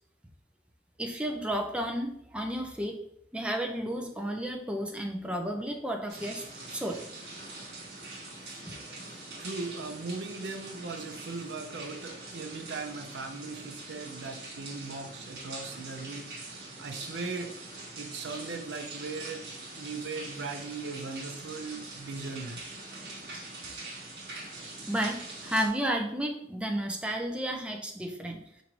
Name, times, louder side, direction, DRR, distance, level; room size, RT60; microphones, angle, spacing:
voice 1, 1.0-3.0 3.3-6.4 6.7-7.0 24.8-28.4, right 1 dB, 5° right, 2 dB, 0.5 m, -32 dB
sound 1, 6.1-25.7, right 2 dB, 70° right, 1.1 m, -43 dB
voice 2, 9.4-16.3 16.8-17.5 18.0-19.4 19.8-22.6, right 3 dB, 85° right, 6 dB, 0.5 m, -38 dB
4.5 x 2.6 x 3.0 m, 0.70 s
head